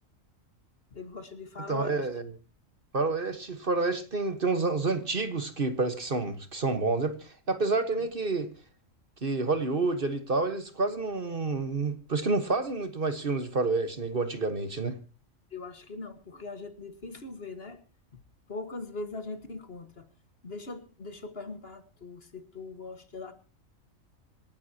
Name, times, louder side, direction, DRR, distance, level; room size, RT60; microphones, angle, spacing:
voice 1, 0.9-2.0 8.0-8.1 15.5-17.8 18.5-20.0 20.4-23.3, left 3 dB, 50° left, 9 dB, 1.8 m, -41 dB
voice 2, 1.7-2.3 2.9-8.5 9.2-15.0, right 3 dB, 45° right, 9 dB, 1.5 m, -29 dB
26.5 x 11.5 x 2.8 m, 0.32 s
omnidirectional pair, 1.4 m